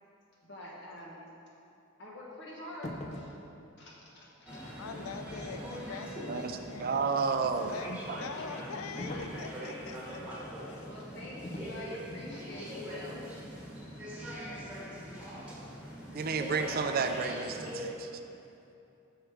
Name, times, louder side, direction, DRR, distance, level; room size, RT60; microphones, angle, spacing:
voice 1, 0.4-1.2 2.0-3.3 3.8-4.6 8.3-8.4 8.7-8.8 9.1-9.4 10.0-10.3 10.8-13.2, left 1 dB, 55° left, -4 dB, 1.3 m, -46 dB
sound 1, 2.8-3.4 9.0-9.5 11.4-11.8 12.1-12.4, left 1 dB, 35° left, 0.4 m, -41 dB
sound 2, 4.5-17.9, equal, 5° right, 1.3 m, -42 dB
voice 2, 4.8-7.1 7.6-10.2 10.6-10.9, left 5 dB, 90° left, 7 dB, 0.4 m, -43 dB
voice 3, 6.3-8.2 16.1-18.1, right 5 dB, 45° right, 7 dB, 0.4 m, -32 dB
6.3 x 4.6 x 4.9 m, 2.8 s
head